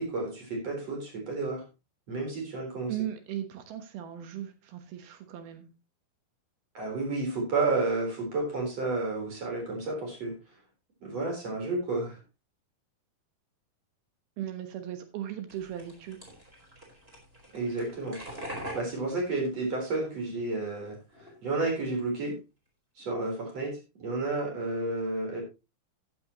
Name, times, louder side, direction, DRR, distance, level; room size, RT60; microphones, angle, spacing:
voice 1, 0.0-1.6 2.1-3.0 6.7-10.3 11.0-12.2 17.5-22.4 23.0-25.4, right 3 dB, 40° right, 2 dB, 4.8 m, -31 dB
voice 2, 2.9-5.7 14.4-16.2, right 11 dB, 80° right, 8 dB, 3.1 m, -37 dB
sound 1, 15.5-20.3 20.6-21.3, equal, 15° right, 4.3 m, -44 dB
14.5 x 9.6 x 3.0 m, 0.27 s
omnidirectional pair, 4.4 m